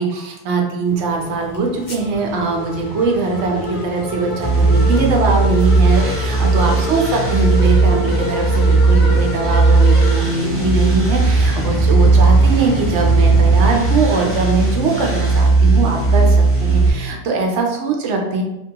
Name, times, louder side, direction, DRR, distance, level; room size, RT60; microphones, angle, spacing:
voice 1, 0.0-18.4, right 3 dB, 85° right, 1 dB, 0.9 m, -21 dB
sound 1, 0.8-15.4, left 1 dB, 60° left, 0.8 m, -28 dB
sound 2, 4.4-16.9, right 3 dB, 15° right, 0.5 m, -15 dB
2.9 x 2.2 x 2.8 m, 0.92 s
omnidirectional pair, 1.2 m